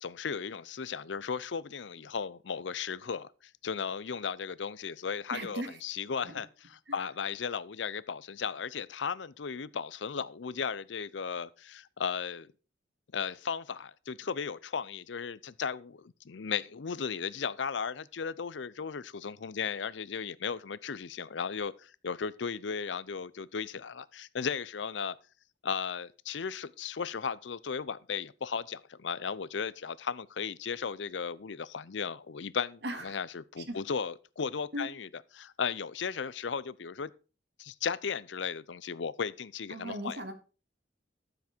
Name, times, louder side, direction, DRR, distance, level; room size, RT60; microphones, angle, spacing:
voice 1, 0.0-3.3 3.6-12.5 13.1-25.2 25.6-35.1 35.3-37.1 37.6-40.2, left 6 dB, 80° left, 0.6 m, -36 dB
voice 2, 5.3-5.7 6.3-6.4 32.8-33.0 33.7-33.8 34.7-34.9 39.7-40.3, right 1 dB, 65° right, 2.2 m, -37 dB
13.0 x 7.3 x 4.4 m
head